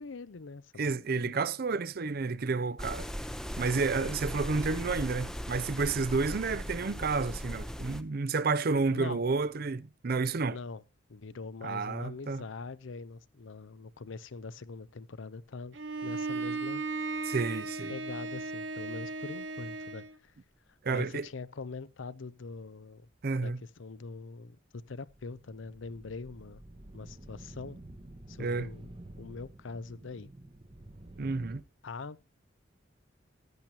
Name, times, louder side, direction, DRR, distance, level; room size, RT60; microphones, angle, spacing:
voice 1, 0.0-0.9 1.2-1.3 4.0-4.2 8.9-9.2 10.5-10.8 11.1-15.8 16.0-16.8 17.9-20.3 20.9-23.1 23.4-26.6 26.9-27.8 28.3-28.9 29.2-30.3 31.8-32.2, left 4 dB, 85° left, 0.7 m, -43 dB
voice 2, 0.8-3.1 3.6-10.6 11.6-12.4 17.2-17.9 20.8-21.3 23.2-23.6 28.4-28.7 31.2-31.6, right 4 dB, 50° right, 0.6 m, -30 dB
sound 1, 2.8-8.0, equal, 5° left, 0.7 m, -38 dB
Bowed string instrument, 15.7-20.2, right 3 dB, 85° right, 1.3 m, -36 dB
sound 2, 24.9-31.6, right 1 dB, 30° right, 0.9 m, -50 dB
14.5 x 10.5 x 2.9 m
head